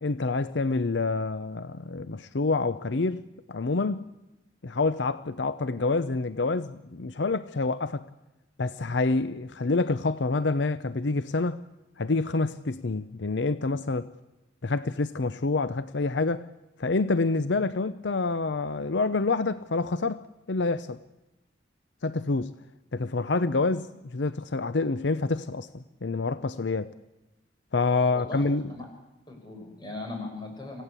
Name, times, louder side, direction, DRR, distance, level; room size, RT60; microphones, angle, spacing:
voice 1, 0.0-3.2 3.5-4.0 4.6-8.0 8.6-11.6 12.0-14.1 14.6-16.5 16.8-21.0 22.0-22.5 22.9-26.9 27.7-28.7, left 3 dB, 75° left, 0.7 m, -27 dB
voice 2, 29.3-30.8, left 2 dB, 25° left, 7.0 m, -38 dB
26.5 x 16.5 x 8.4 m
head